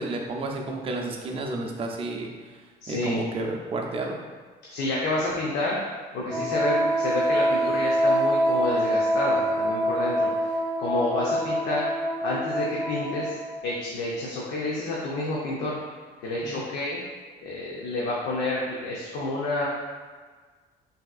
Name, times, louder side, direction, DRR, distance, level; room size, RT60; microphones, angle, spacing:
voice 1, 0.0-2.3 2.9-4.2 6.3-6.4 16.5-16.6, right 2 dB, 35° right, 1 dB, 0.4 m, -31 dB
voice 2, 2.8-3.2 4.7-5.8 6.1-10.5 10.8-11.8 12.2-13.4 13.6-15.8 16.2-17.0 17.4-19.7, left 2 dB, 85° left, -4 dB, 0.5 m, -29 dB
Wind instrument woodwind instrument, 6.3-13.6, equal, 20° left, 0.8 m, -25 dB
3.3 x 2.7 x 2.3 m, 1.5 s
cardioid pair, 110°, 17 cm